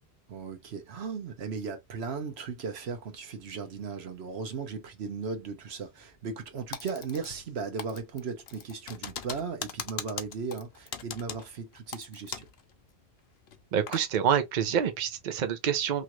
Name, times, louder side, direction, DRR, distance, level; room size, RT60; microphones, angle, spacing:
voice 1, 0.3-12.5, right 5 dB, 80° right, 1.1 m, -37 dB
Typing, 6.7-7.5 7.8-12.6 12.9-13.0 13.5-14.1, left 8 dB, 75° left, 0.8 m, -40 dB
voice 2, 13.7-16.0, right 8 dB, 55° right, 0.7 m, -27 dB
3.1 x 2.4 x 2.9 m
omnidirectional pair, 1.1 m